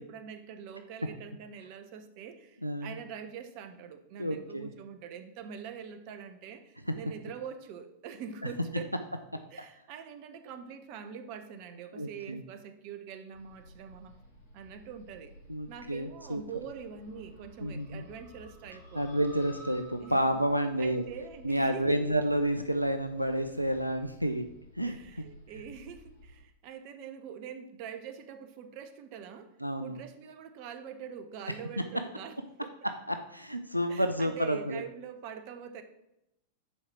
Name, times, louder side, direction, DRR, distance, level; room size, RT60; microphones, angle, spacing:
voice 1, 0.0-8.9 9.5-14.2 14.5-15.4 15.7-19.0 20.0-20.2 20.8-22.2 24.8-32.7 33.9-35.8, right 7 dB, 45° right, 9 dB, 0.9 m, -44 dB
voice 2, 2.6-3.0 4.2-4.7 9.6-9.7 12.0-12.4 15.5-16.4 17.6-18.0 18.9-21.0 21.4-24.5 24.8-25.0 29.6-30.0 33.1-34.8, right 1 dB, 90° right, 7 dB, 0.5 m, -30 dB
sound 1, 13.3-26.4, equal, 60° left, 2.7 m, -54 dB
7.1 x 4.9 x 5.9 m, 0.85 s
figure-of-eight pair, 90°, 0 cm